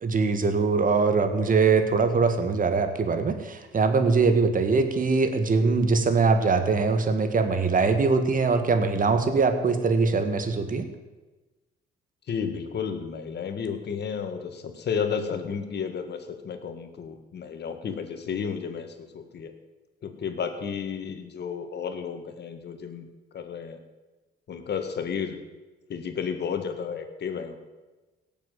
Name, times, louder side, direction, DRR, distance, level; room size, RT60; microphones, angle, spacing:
voice 1, 0.0-10.9, right 4 dB, 45° right, 8 dB, 1.9 m, -22 dB
voice 2, 12.3-19.5 20.0-23.1 23.3-23.8 24.5-25.4 25.9-27.6, left 6 dB, 55° left, 7 dB, 2.0 m, -32 dB
17.0 x 7.4 x 7.6 m, 1.2 s
cardioid pair, 90°, 20 cm